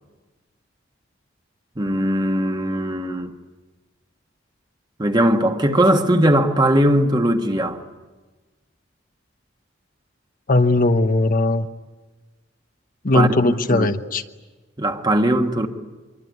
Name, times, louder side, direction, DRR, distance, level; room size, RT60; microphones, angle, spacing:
voice 1, 1.8-3.3 5.0-7.8 13.1-13.9 14.8-15.7, right 1 dB, 25° right, 1.6 m, -19 dB
voice 2, 10.5-11.7 13.0-14.2, left 2 dB, 45° left, 1.0 m, -18 dB
25.5 x 23.5 x 9.5 m
head